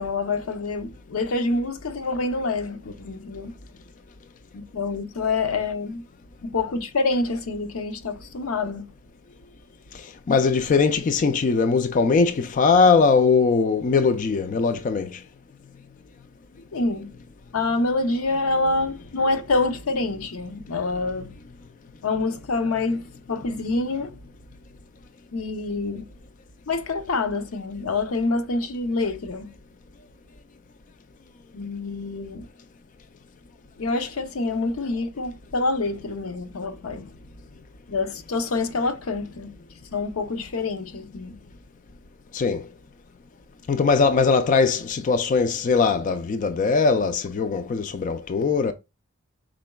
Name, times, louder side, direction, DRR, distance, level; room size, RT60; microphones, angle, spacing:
voice 1, 0.0-3.5 4.5-6.0 6.4-8.9 16.7-17.2 17.5-21.4 22.0-24.2 25.3-26.1 26.7-29.6 31.5-32.5 33.8-37.1 37.9-39.6 39.9-41.4, left 3 dB, 80° left, 0.6 m, -26 dB
voice 2, 9.9-15.2 42.3-42.7 43.7-48.7, left 4 dB, 40° left, 0.3 m, -21 dB
5.0 x 3.8 x 2.2 m
head